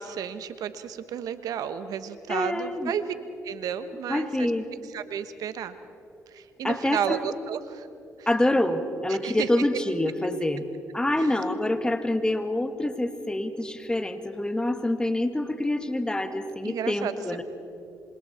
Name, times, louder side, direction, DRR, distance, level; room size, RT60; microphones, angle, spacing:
voice 1, 0.0-3.1 3.4-4.5 4.8-5.8 6.3-7.9 8.2-8.3 9.1-9.8 11.2-11.4 16.6-17.4, right 8 dB, 70° right, 11 dB, 1.2 m, -33 dB
voice 2, 2.3-2.9 4.1-4.7 6.6-7.2 8.3-10.7 10.9-17.4, left 1 dB, 15° left, 8 dB, 1.9 m, -26 dB
28.5 x 25.5 x 4.4 m, 2.6 s
supercardioid pair, 70°, 6 cm